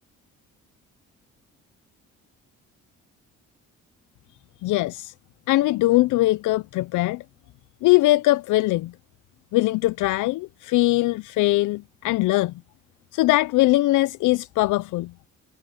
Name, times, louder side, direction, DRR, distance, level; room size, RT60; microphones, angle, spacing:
voice 1, 4.6-5.1 5.5-7.2 7.8-8.9 9.5-12.5 13.1-15.1, left 18 dB, 85° left, 0.5 m, -21 dB
cardioid pair, 90°, 30 cm